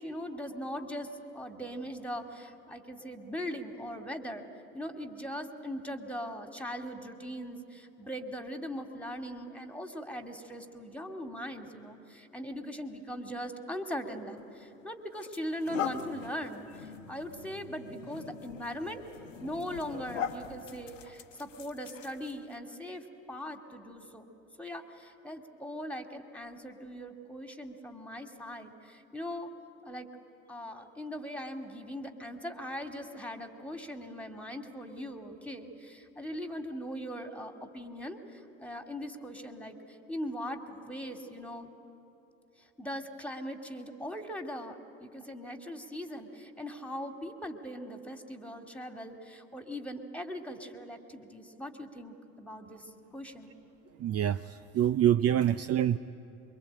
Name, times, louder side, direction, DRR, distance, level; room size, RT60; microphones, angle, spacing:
voice 1, 0.0-4.5 4.7-19.0 19.4-24.3 24.6-29.5 29.8-30.1 30.5-41.7 42.6-53.5, equal, 5° left, 6 dB, 2.4 m, -40 dB
sound 1, 14.4-14.6 15.1-22.5, left 7 dB, 90° left, 1.2 m, -41 dB
voice 2, 54.0-56.0, right 11 dB, 40° right, 14 dB, 0.6 m, -26 dB
25.0 x 23.0 x 8.8 m, 2.9 s
hypercardioid pair, 60°, 37 cm